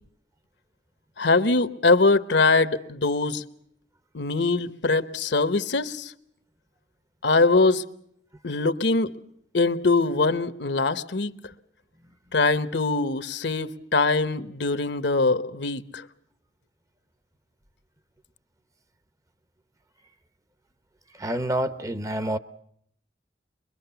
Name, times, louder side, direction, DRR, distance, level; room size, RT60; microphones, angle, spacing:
voice 1, 1.2-3.4 4.1-6.1 7.2-7.8 8.4-9.1 9.5-11.3 12.3-16.0, left 3 dB, 70° left, 1.1 m, -22 dB
voice 2, 21.2-22.4, right 1 dB, 20° right, 0.9 m, -27 dB
24.0 x 22.5 x 6.9 m
head